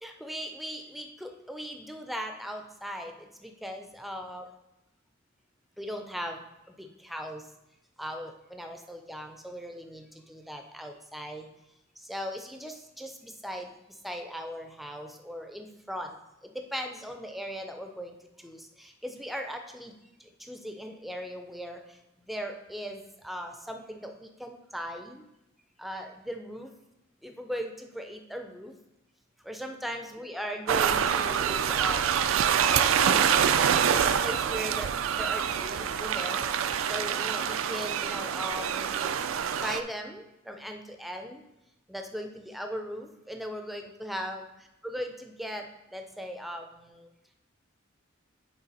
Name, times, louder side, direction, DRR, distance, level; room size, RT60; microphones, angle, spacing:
voice 1, 0.0-4.4 5.8-7.5 8.0-11.5 12.0-16.2 16.4-19.9 20.2-22.0 22.2-25.2 25.8-26.7 27.2-28.8 29.4-32.1 32.6-39.2 39.6-41.4 41.9-47.1, equal, ahead, 4 dB, 0.5 m, -39 dB
sound 1, 30.7-39.8, right 8 dB, 75° right, 0.4 m, -26 dB
9.0 x 3.7 x 4.1 m, 0.91 s
head